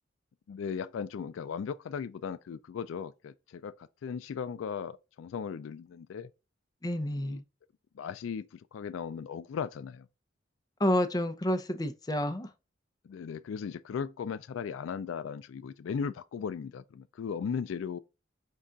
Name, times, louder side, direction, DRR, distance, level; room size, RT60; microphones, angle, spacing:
voice 1, 0.5-6.3 7.2-7.4 7.9-10.1 13.0-18.0, left 6 dB, 80° left, 0.3 m, -37 dB
voice 2, 6.8-7.4 10.8-12.5, left 1 dB, 20° left, 0.6 m, -29 dB
5.4 x 2.4 x 3.8 m
head